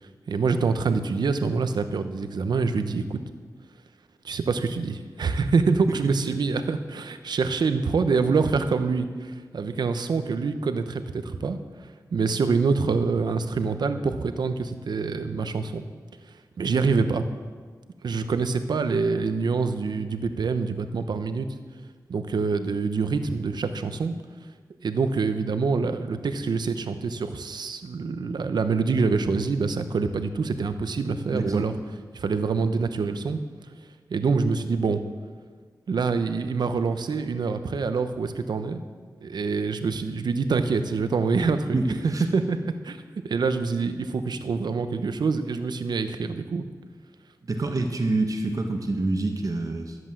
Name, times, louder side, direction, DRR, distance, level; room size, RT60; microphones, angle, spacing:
voice 1, 0.0-3.2 4.2-15.9 16.3-17.3 18.0-21.5 22.1-24.1 24.8-31.7 32.1-33.4 34.1-35.0 35.9-38.8 39.2-43.0 43.2-46.7, right 4 dB, 85° right, 9 dB, 0.9 m, -26 dB
voice 2, 31.3-31.7 41.7-42.3 47.4-50.0, right 2 dB, 55° right, 3 dB, 1.4 m, -27 dB
13.5 x 8.0 x 7.6 m, 1.5 s
cardioid pair, 60°, 7 cm